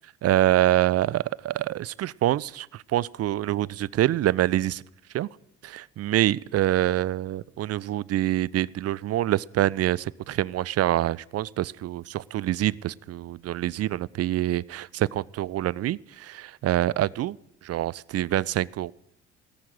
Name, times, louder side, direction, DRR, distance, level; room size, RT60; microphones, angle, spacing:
voice 1, 0.2-4.8 5.1-5.3 5.6-18.9, right 14 dB, 50° right, 24 dB, 0.5 m, -26 dB
17.5 x 6.4 x 7.8 m, 0.81 s
hypercardioid pair, 55°, 33 cm